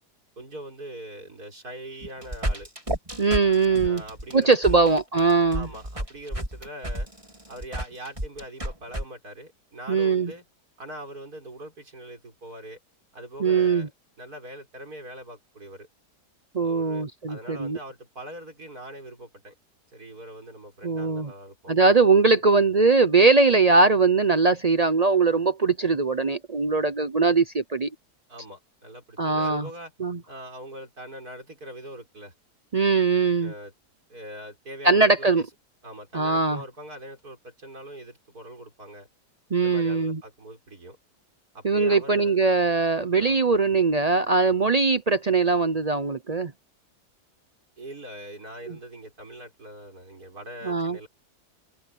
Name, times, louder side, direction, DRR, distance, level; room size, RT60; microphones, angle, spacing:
voice 1, 0.4-2.7 3.8-4.8 5.5-7.1 7.5-10.4 10.8-12.8 13.1-13.9 14.2-15.9 16.6-19.5 19.9-22.0 28.3-29.9 30.3-32.3 33.4-33.7 34.1-35.4 35.8-39.1 39.6-41.0 41.5-42.4 43.2-43.4 47.8-51.1, right 1 dB, 70° right, 6.7 m, -42 dB
sound 1, 2.0-9.0, right 1 dB, 20° right, 4.4 m, -31 dB
voice 2, 3.2-4.0 4.3-5.7 9.9-10.3 13.4-13.9 16.5-17.8 20.8-21.3 21.7-27.9 29.2-29.7 30.0-30.2 32.7-33.5 34.8-35.4 36.1-36.6 39.5-40.2 41.6-46.5 48.7-48.8 50.6-51.0, right 4 dB, 45° right, 0.5 m, -21 dB
open air
omnidirectional pair, 1.7 m